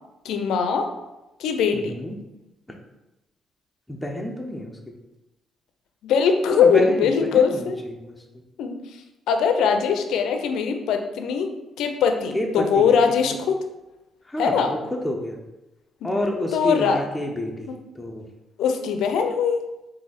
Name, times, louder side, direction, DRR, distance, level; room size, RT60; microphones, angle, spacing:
voice 1, 0.2-0.9 1.4-2.0 6.0-7.8 8.6-8.8 9.3-11.5 11.8-13.6 14.4-14.7 16.0-16.1 16.5-17.0 17.7-17.8 18.6-19.6, left 6 dB, 85° left, 6 dB, 0.5 m, -21 dB
voice 2, 1.7-2.2 2.7-2.8 3.9-4.8 6.5-8.2 12.3-12.9 13.2-13.4 14.2-15.4 16.0-18.2, left 1 dB, 5° left, 0 dB, 0.7 m, -29 dB
3.8 x 2.7 x 4.0 m, 0.98 s
cardioid pair, 90°, 0 cm